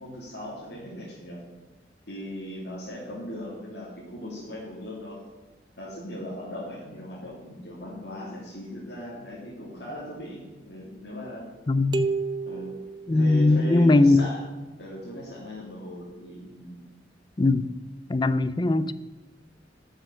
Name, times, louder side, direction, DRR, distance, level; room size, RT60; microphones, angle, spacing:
voice 1, 0.0-1.4 2.1-5.3 5.8-11.5 12.5-12.8 13.1-14.4 14.8-16.9, equal, 70° left, -7 dB, 2.8 m, -38 dB
voice 2, 11.7-12.1 13.1-14.2 17.4-17.7 18.1-18.9, left 2 dB, 25° left, 15 dB, 0.4 m, -20 dB
sound 1, 11.9-13.8, right 4 dB, 25° right, 0.5 m, -31 dB
10.0 x 6.4 x 7.1 m, 1.2 s
head